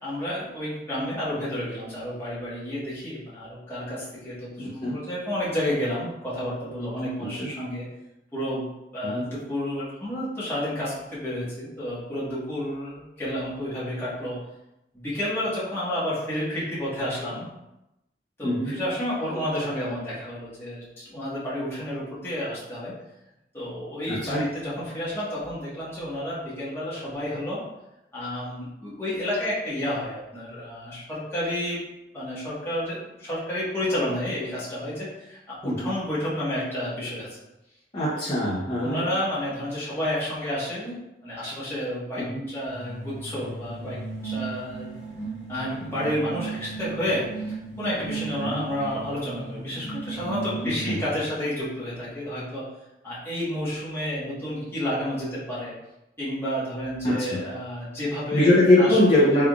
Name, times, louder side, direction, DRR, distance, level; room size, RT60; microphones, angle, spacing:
voice 1, 0.0-7.8 8.3-8.6 8.9-14.4 14.9-17.5 18.4-22.9 23.5-27.6 28.1-31.8 32.1-37.3 38.8-41.0 41.2-44.0 44.2-44.9 45.5-52.7 53.0-55.7 56.2-59.0 59.3-59.5, left 1 dB, 15° left, -10 dB, 1.3 m, -30 dB
voice 2, 4.6-5.0 7.4-7.5 9.0-9.2 18.4-18.7 24.1-24.4 35.6-35.7 37.9-39.0 42.2-42.4 48.5-48.6 50.6-51.0 57.0-57.4 58.3-59.5, left 1 dB, 30° left, -8 dB, 0.7 m, -22 dB
sound 1, 42.7-51.3, right 4 dB, 5° right, 1.3 m, -36 dB
3.5 x 3.4 x 2.4 m, 0.89 s
head